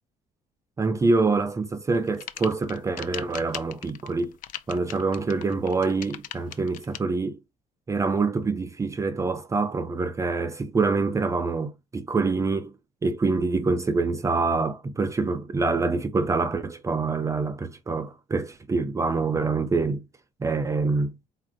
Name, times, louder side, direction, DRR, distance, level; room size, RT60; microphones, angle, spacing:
voice 1, 0.8-4.3 4.7-7.4 7.9-12.7 13.0-20.0 20.4-21.1, right 3 dB, 20° right, 0.4 m, -25 dB
sound 1, 1.9-7.0, left 12 dB, 60° left, 0.4 m, -39 dB
3.9 x 2.5 x 3.7 m
cardioid pair, 140°, 15 cm